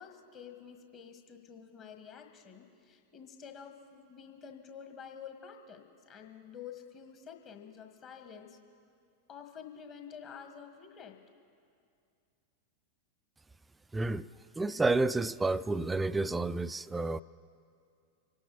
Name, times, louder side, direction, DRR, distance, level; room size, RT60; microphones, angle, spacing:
voice 1, 0.0-8.6 9.3-11.2, left 7 dB, 35° left, 5 dB, 1.5 m, -49 dB
voice 2, 13.9-14.3 14.6-17.2, right 3 dB, 10° right, 17 dB, 0.3 m, -30 dB
26.0 x 12.0 x 4.1 m, 2.4 s
figure-of-eight pair, 90°, 0 cm